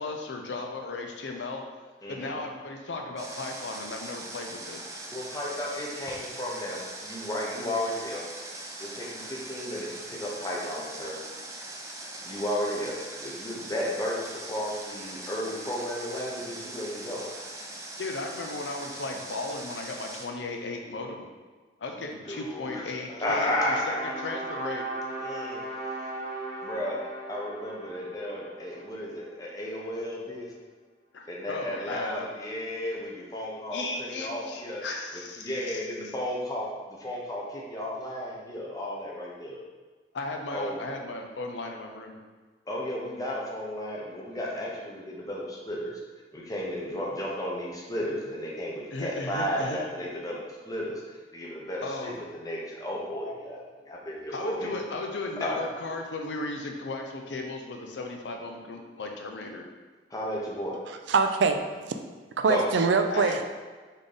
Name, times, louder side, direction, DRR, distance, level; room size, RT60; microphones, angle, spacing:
voice 1, 0.0-1.6 2.1-4.8 18.0-21.3 21.8-23.9 24.2-24.8 30.3-30.4 31.1-32.3 33.7-35.8 40.1-42.2 48.9-49.8 51.8-52.2 53.3-53.4 54.3-59.7 63.1-63.4, left 2 dB, 85° left, 3 dB, 0.6 m, -36 dB
voice 2, 2.0-2.4 5.1-8.3 8.8-11.2 12.2-17.3 22.3-22.8 23.2-24.1 25.2-25.6 26.6-27.0 27.3-30.5 31.3-33.8 34.2-34.8 35.4-39.6 40.5-40.9 42.7-45.9 46.3-53.6 53.8-54.7 55.4-55.6 60.1-60.8 62.5-62.7, left 1 dB, 20° left, -3 dB, 0.8 m, -33 dB
Water, 3.2-20.3, right 2 dB, 20° right, 0.5 m, -41 dB
sound 1, 23.2-29.4, right 2 dB, 45° right, 0.8 m, -38 dB
voice 3, 61.1-62.0 62.4-63.4, right 4 dB, 85° right, 7 dB, 0.4 m, -24 dB
4.1 x 3.7 x 3.4 m, 1.4 s
head